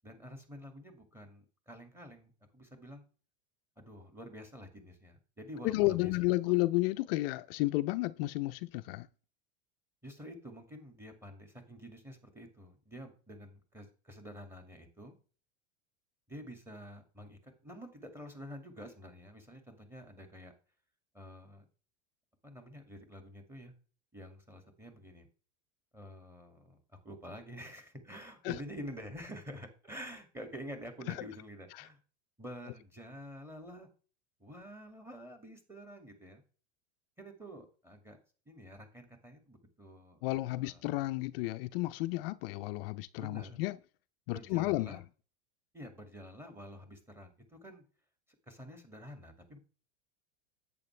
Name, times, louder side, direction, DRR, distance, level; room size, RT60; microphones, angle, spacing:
voice 1, 0.0-3.0 3.8-6.1 6.5-6.6 10.0-15.2 16.3-20.5 21.1-21.6 22.4-23.7 24.1-25.3 25.9-26.8 27.0-32.0 32.4-33.9 34.4-36.4 37.2-38.2 38.5-40.2 40.6-40.8 43.2-43.6 44.3-45.0 45.7-47.8 48.5-49.6, equal, 5° right, 2.1 m, -48 dB
voice 2, 5.6-9.1 28.4-28.6 31.1-31.2 31.7-31.9 40.2-43.8 44.3-45.0, left 19 dB, 60° left, 0.6 m, -32 dB
11.0 x 8.4 x 3.3 m
supercardioid pair, 145°, 33 cm